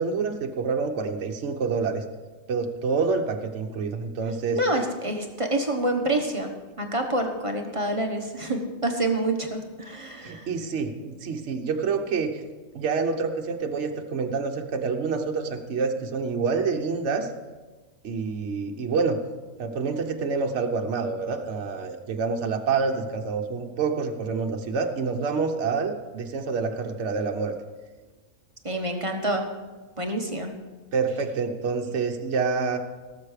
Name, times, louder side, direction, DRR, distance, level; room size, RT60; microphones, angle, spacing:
voice 1, 0.0-2.0 2.5-4.6 10.2-12.4 12.7-17.3 18.0-19.2 19.6-27.5 30.9-32.8, right 4 dB, 55° right, 4 dB, 1.2 m, -27 dB
voice 2, 4.5-10.5 28.6-29.4 30.0-30.5, right 1 dB, 25° right, 3 dB, 1.1 m, -27 dB
18.0 x 7.3 x 5.0 m, 1.3 s
omnidirectional pair, 1.5 m